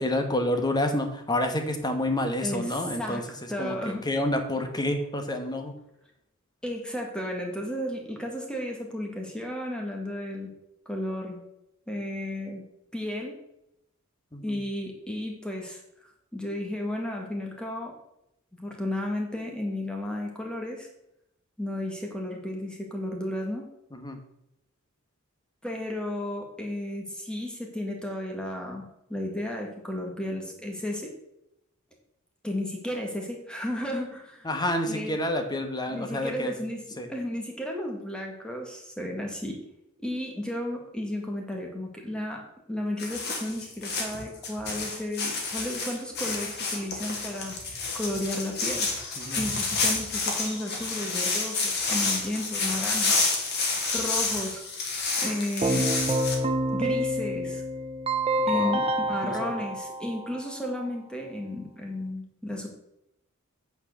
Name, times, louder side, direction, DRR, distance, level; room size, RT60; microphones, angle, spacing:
voice 1, 0.0-3.2 3.6-3.8 4.0-5.7 14.3-14.6 23.9-24.2 34.4-36.5 37.0-37.1 49.2-49.4 58.5-58.7 59.2-59.6, left 1 dB, 20° left, 5 dB, 1.1 m, -28 dB
voice 2, 2.4-4.1 6.6-10.5 10.8-11.4 11.9-12.6 12.9-13.4 14.4-15.8 16.3-18.0 18.6-20.9 21.6-23.7 25.6-31.1 32.4-34.5 34.9-35.2 35.9-39.6 40.0-42.4 42.7-47.6 47.9-48.9 49.3-53.5 53.9-54.6 55.2-55.9 56.7-57.6 58.5-62.7, left 1 dB, 5° left, 1 dB, 1.7 m, -33 dB
sound 1, 43.0-56.3, left 3 dB, 50° left, 2.0 m, -29 dB
Keyboard (musical), 55.6-60.6, right 1 dB, 30° right, 0.7 m, -27 dB
8.7 x 4.6 x 6.6 m, 0.83 s
head